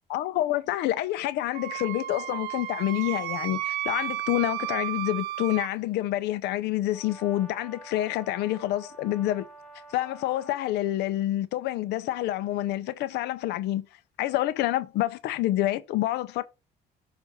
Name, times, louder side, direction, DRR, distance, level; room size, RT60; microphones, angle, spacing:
voice 1, 0.1-9.5 9.9-13.8 14.2-16.4, left 14 dB, 80° left, 0.5 m, -28 dB
Wind instrument woodwind instrument, 1.5-5.7, right 13 dB, 85° right, 0.5 m, -33 dB
Brass instrument, 6.9-10.8, right 2 dB, 5° left, 1.0 m, -48 dB
7.1 x 2.5 x 5.6 m
cardioid pair, 110°, 17 cm